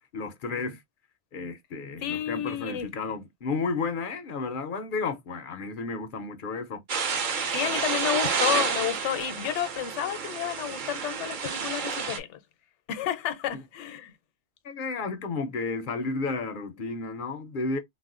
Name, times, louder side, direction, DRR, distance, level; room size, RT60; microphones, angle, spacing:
voice 1, 0.1-0.8 1.3-6.8 14.6-17.8, left 4 dB, 60° left, 0.6 m, -32 dB
voice 2, 2.0-2.9 7.5-12.4 12.9-14.1, left 10 dB, 80° left, 0.9 m, -31 dB
sound 1, 6.9-12.2, right 5 dB, 55° right, 0.7 m, -29 dB
4.1 x 2.0 x 2.4 m
omnidirectional pair, 1.2 m